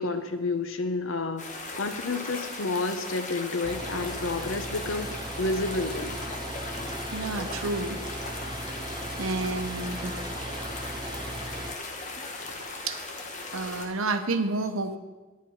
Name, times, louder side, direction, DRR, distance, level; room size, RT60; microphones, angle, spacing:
voice 1, 0.0-1.5 1.8-6.2, left 3 dB, 75° left, 8 dB, 0.9 m, -30 dB
sound 1, 1.4-13.9, left 3 dB, 35° left, 1.4 m, -38 dB
sound 2, 3.6-11.7, right 2 dB, 20° right, 0.5 m, -38 dB
voice 2, 7.1-8.0 9.2-10.2 12.8-13.0 13.5-15.0, right 3 dB, 85° right, 8 dB, 0.9 m, -30 dB
11.0 x 9.6 x 5.5 m, 1.2 s
head